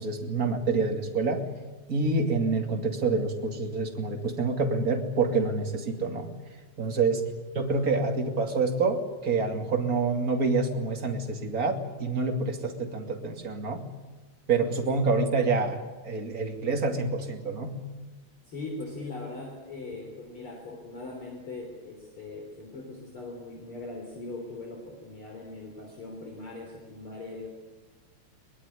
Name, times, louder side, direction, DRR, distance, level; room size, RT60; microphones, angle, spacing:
voice 1, 0.0-1.4 1.9-6.3 6.8-7.2 7.5-13.8 14.5-17.7, right 3 dB, 30° right, 4 dB, 2.7 m, -27 dB
voice 2, 18.4-27.5, left 2 dB, 45° left, 1 dB, 4.4 m, -40 dB
22.5 x 21.0 x 9.9 m, 1.2 s
omnidirectional pair, 3.3 m